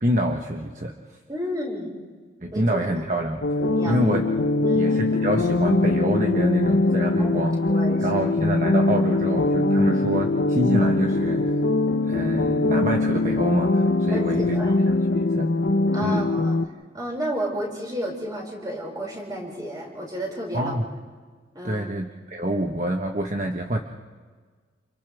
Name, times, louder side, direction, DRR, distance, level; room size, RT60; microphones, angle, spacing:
voice 1, 0.0-0.9 2.4-3.4 3.8-4.3 4.7-7.6 8.0-11.5 12.0-14.6 15.1-15.5 16.0-16.3 20.5-20.8 21.6-23.8, right 1 dB, 40° right, 3 dB, 1.2 m, -26 dB
voice 2, 1.3-1.9 2.5-2.9 3.6-4.0 4.6-4.9 7.2-7.4 7.7-8.2 14.1-14.8 15.9-16.6 16.9-20.8 21.5-21.8, equal, 20° right, -2 dB, 5.8 m, -32 dB
sound 1, 3.4-16.7, left 2 dB, 70° left, 0.8 m, -22 dB
29.5 x 29.5 x 3.5 m, 1.5 s
head